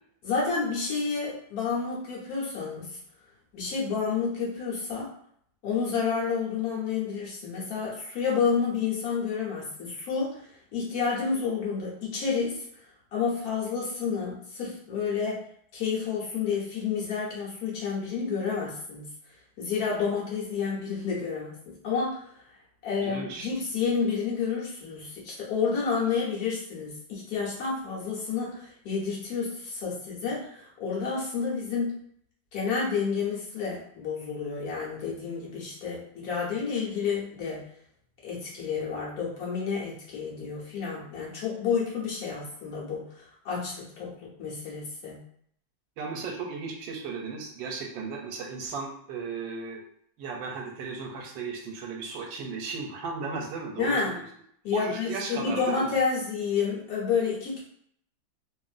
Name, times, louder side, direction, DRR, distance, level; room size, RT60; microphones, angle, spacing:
voice 1, 0.2-3.0 3.5-5.1 5.6-12.6 13.1-15.4 15.7-19.1 19.6-22.3 22.8-32.0 32.5-37.6 38.2-45.2 53.8-54.1 54.6-57.6, left 5 dB, 60° left, -5 dB, 1.3 m, -30 dB
voice 2, 23.0-23.5 46.0-49.8 50.2-54.1 54.7-55.9, right 4 dB, 85° right, 1 dB, 1.4 m, -35 dB
2.9 x 2.6 x 2.4 m, 0.65 s
omnidirectional pair, 2.0 m